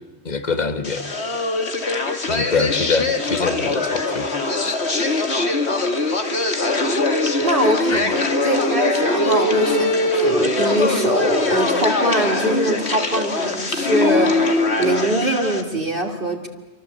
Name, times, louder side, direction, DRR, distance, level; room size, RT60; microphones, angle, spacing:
voice 1, 0.3-1.0 2.3-4.3 4.6-4.7 7.9-8.2, left 4 dB, 40° left, 9 dB, 1.8 m, -24 dB
sound 1, 0.8-15.6, left 2 dB, 75° left, 2.6 m, -21 dB
voice 2, 7.4-16.5, right 1 dB, 55° right, 2 dB, 3.0 m, -23 dB
28.5 x 25.0 x 8.2 m, 1.1 s
omnidirectional pair, 1.1 m